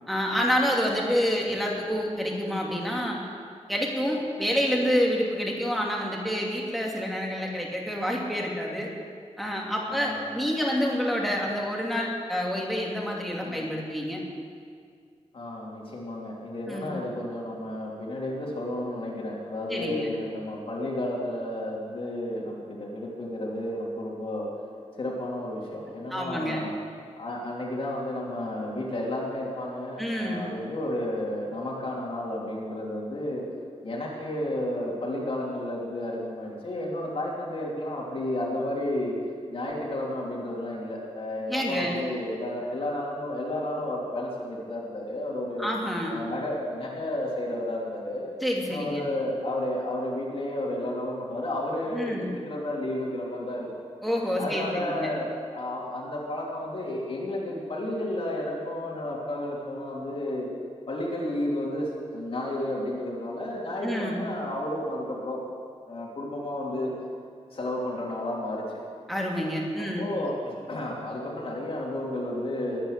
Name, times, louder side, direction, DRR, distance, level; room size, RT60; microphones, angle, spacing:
voice 1, 0.1-3.2 3.7-8.9 9.4-14.2 16.7-17.0 19.7-20.1 26.1-26.6 30.0-30.5 41.5-42.0 45.6-46.2 48.4-49.0 51.9-52.3 54.0-55.1 63.8-64.2 69.1-70.1, equal, ahead, -2 dB, 2.5 m, -28 dB
voice 2, 9.9-10.2 13.4-13.7 15.3-24.5 25.0-26.7 27.2-33.4 33.8-39.1 39.5-45.7 46.1-48.3 48.7-53.7 54.4-60.5 60.9-65.4 65.9-66.9 67.5-68.6 70.0-72.8, left 1 dB, 50° left, -4 dB, 2.9 m, -32 dB
21.0 x 9.1 x 6.6 m, 2.1 s
wide cardioid pair, 150°, 12 cm